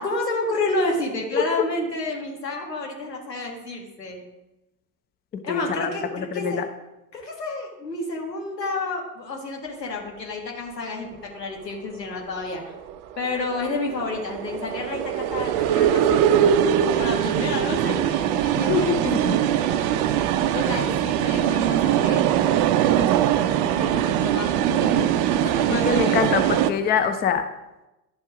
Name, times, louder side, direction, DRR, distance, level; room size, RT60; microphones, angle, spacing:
voice 1, 0.0-4.2 5.4-6.6 7.1-12.7 13.2-16.5 17.0-19.9 20.5-22.6 23.7-25.2 25.4-26.2, left 2 dB, 85° left, 1 dB, 1.8 m, -30 dB
voice 2, 1.3-1.6 5.5-6.7 18.6-19.4 25.8-27.4, left 6 dB, 20° left, 8 dB, 0.6 m, -24 dB
sound 1, 12.6-26.7, right 10 dB, 40° right, 0.5 m, -22 dB
11.0 x 4.4 x 5.0 m, 0.99 s
figure-of-eight pair, 80°, 48 cm